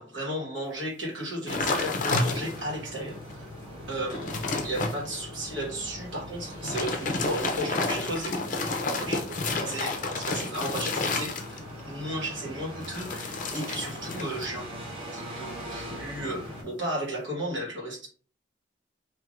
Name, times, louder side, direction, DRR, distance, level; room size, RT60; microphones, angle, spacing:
voice 1, 0.0-3.5 3.9-9.2 9.6-11.3 11.9-14.7 15.1-18.1, right 1 dB, 80° right, -3 dB, 1.4 m, -34 dB
sound 1, 1.5-2.8 3.3-3.4 3.8-5.0 6.5-11.8 12.8-14.5 14.8-15.2, left 3 dB, 40° left, 0.5 m, -30 dB
sound 2, 1.5-16.6, equal, 30° right, 1.0 m, -41 dB
3.2 x 2.6 x 2.5 m, 0.42 s
head